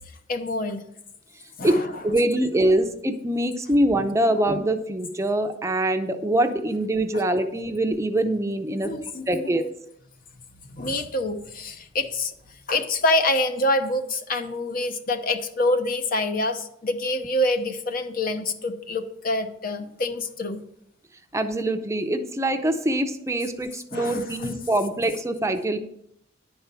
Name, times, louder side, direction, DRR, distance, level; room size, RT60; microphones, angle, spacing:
voice 1, 0.3-0.8 1.6-1.9 2.7-2.8 7.1-7.2 8.8-9.5 10.7-12.3 12.7-20.6 23.9-24.5, left 2 dB, 50° left, 7 dB, 0.9 m, -26 dB
voice 2, 1.6-8.9 9.3-9.6 21.3-25.8, right 1 dB, 15° right, 7 dB, 0.6 m, -24 dB
10.5 x 4.5 x 6.8 m, 0.75 s
head